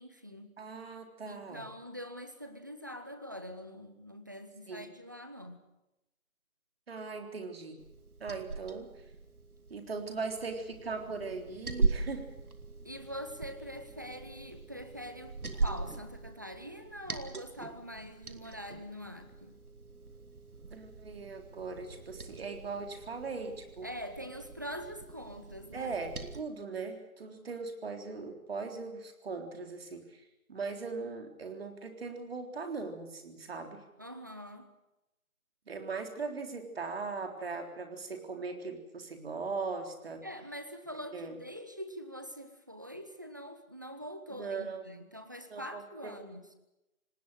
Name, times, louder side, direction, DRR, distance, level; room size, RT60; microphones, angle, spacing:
voice 1, 0.0-0.6 1.2-5.6 12.8-19.5 23.8-25.9 34.0-34.7 40.2-46.5, equal, 15° right, 8 dB, 0.8 m, -44 dB
voice 2, 0.6-1.6 4.7-4.9 6.9-7.8 8.2-8.9 9.7-12.3 20.7-23.9 25.7-30.2 30.5-33.8 35.7-40.3 41.1-41.4 44.3-44.8 45.5-46.2, right 4 dB, 45° right, 5 dB, 3.8 m, -39 dB
Liquid, 7.8-26.4, right 3 dB, 80° right, 2.6 m, -40 dB
27.5 x 19.0 x 6.6 m, 0.93 s
figure-of-eight pair, 165°, 43 cm